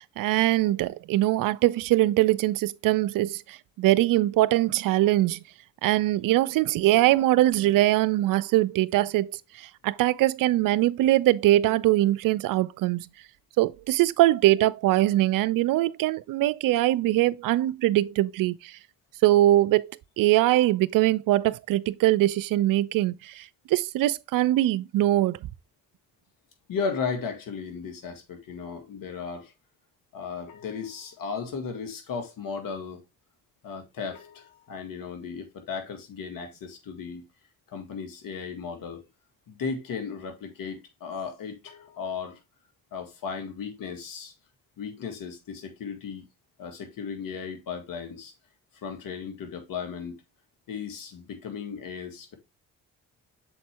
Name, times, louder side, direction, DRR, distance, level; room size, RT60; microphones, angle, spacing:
voice 1, 0.0-5.4 5.8-13.1 13.6-18.7 19.2-25.4, right 15 dB, 60° right, 0.5 m, -22 dB
voice 2, 26.7-29.5 30.1-33.0 33.6-37.2 37.7-39.1 39.5-42.4 42.9-44.3 44.8-46.3 46.6-48.3 48.7-50.2 50.7-52.4, left 5 dB, 60° left, 1.9 m, -35 dB
6.9 x 4.3 x 3.4 m
hypercardioid pair, 50°, 37 cm